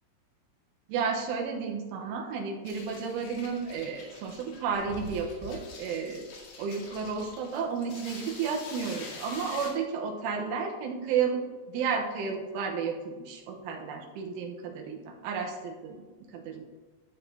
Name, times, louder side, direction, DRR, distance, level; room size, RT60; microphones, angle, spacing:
voice 1, 0.9-6.3 6.6-11.4 11.7-16.0 16.3-16.6, right 6 dB, 80° right, 1 dB, 3.4 m, -32 dB
sound 1, 2.7-9.7, left 3 dB, 80° left, 4.7 m, -45 dB
15.5 x 7.0 x 2.8 m, 1.3 s
omnidirectional pair, 5.9 m